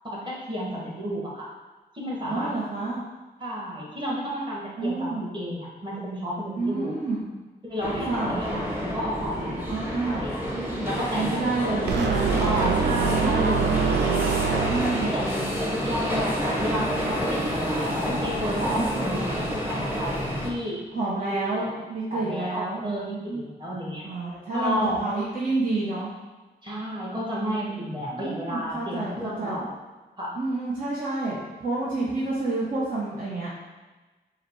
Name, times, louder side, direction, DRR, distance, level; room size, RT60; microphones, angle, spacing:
voice 1, 0.0-1.5 1.9-2.5 3.4-6.9 7.7-8.7 8.9-9.7 10.0-10.3 10.8-11.4 12.4-13.9 14.2-14.4 15.0-15.2 15.8-20.9 21.2-21.6 22.1-24.1 24.5-25.0 26.6-29.7 30.2-30.4, equal, 25° right, -5 dB, 1.5 m, -31 dB
voice 2, 2.3-3.0 4.8-5.3 6.6-7.2 8.1-8.4 9.7-10.3 11.1-12.3 13.1-13.6 14.7-15.3 18.7-18.8 20.9-23.4 24.0-26.1 28.1-29.6 30.3-33.5, right 3 dB, 50° right, -7 dB, 0.9 m, -29 dB
sound 1, 7.8-20.5, equal, 10° right, 0.9 m, -29 dB
sound 2, 11.9-15.1, right 6 dB, 85° right, 0.4 m, -24 dB
4.8 x 2.1 x 4.6 m, 1.2 s
cardioid pair, 70°, 18 cm